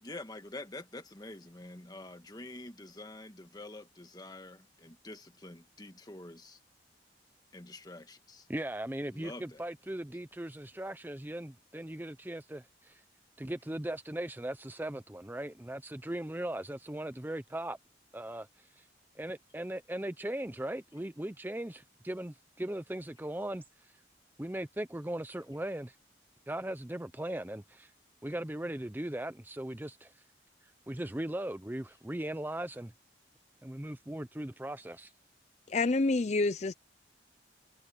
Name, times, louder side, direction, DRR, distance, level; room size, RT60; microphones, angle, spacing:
voice 1, 0.0-6.6 7.5-8.5 9.1-9.6, left 2 dB, 20° left, 1.5 m, -47 dB
voice 2, 8.5-13.0 13.4-17.8 18.1-18.8 19.2-23.6 24.4-25.9 26.5-27.9 28.2-30.1 30.9-32.9 33.6-35.1, right 1 dB, 10° right, 0.6 m, -38 dB
voice 3, 35.7-36.7, left 3 dB, 35° left, 0.4 m, -28 dB
head